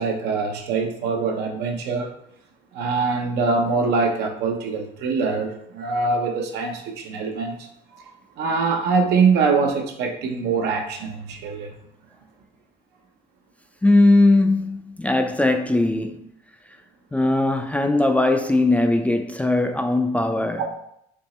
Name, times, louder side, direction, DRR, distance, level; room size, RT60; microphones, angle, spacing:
voice 1, 0.0-2.1 2.7-7.7 8.4-11.7 20.5-20.7, right 4 dB, 85° right, 0.8 m, -23 dB
voice 2, 13.8-16.3 17.1-20.7, left 2 dB, 10° left, 0.3 m, -19 dB
3.6 x 2.9 x 4.1 m
cardioid pair, 110°, 17 cm